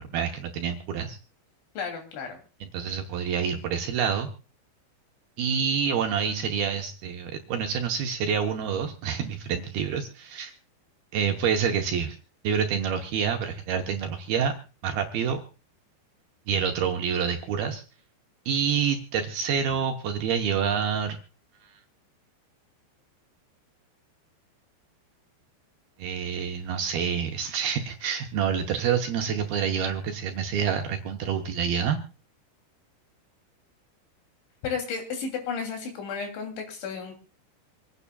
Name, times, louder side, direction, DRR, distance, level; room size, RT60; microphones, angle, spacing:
voice 1, 0.1-1.2 2.6-4.3 5.4-10.5 11.1-12.2 12.4-14.5 14.8-15.4 16.5-17.8 18.5-21.2 26.0-32.0, right 7 dB, 70° right, 4 dB, 2.4 m, -27 dB
voice 2, 1.8-2.4 34.6-37.1, left 5 dB, 75° left, 4 dB, 5.2 m, -33 dB
26.5 x 9.8 x 2.3 m, 0.36 s
omnidirectional pair, 5.4 m